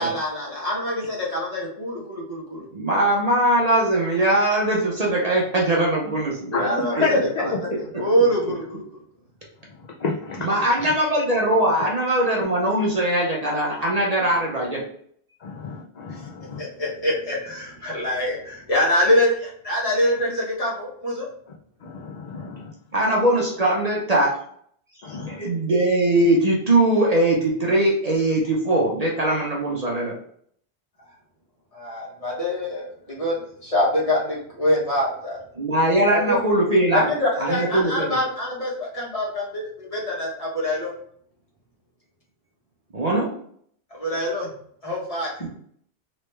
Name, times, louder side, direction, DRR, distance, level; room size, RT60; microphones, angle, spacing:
voice 1, 0.0-2.6 6.6-8.8 16.1-16.2 16.6-21.3 31.7-35.4 36.1-36.4 36.9-40.9 43.9-44.5 44.8-45.5, left 1 dB, 35° left, -5 dB, 1.3 m, -25 dB
voice 2, 2.7-6.6 6.9-7.1 10.4-14.8 22.9-24.3 25.1-30.1 35.6-37.0 37.4-38.2 42.9-43.3, right 1 dB, 40° right, -3 dB, 0.8 m, -21 dB
voice 3, 6.5-7.2 10.0-10.5 15.4-16.6 21.8-22.7 25.0-25.4, left 4 dB, 50° left, -2 dB, 0.5 m, -28 dB
3.2 x 3.1 x 3.2 m, 0.63 s
omnidirectional pair, 1.1 m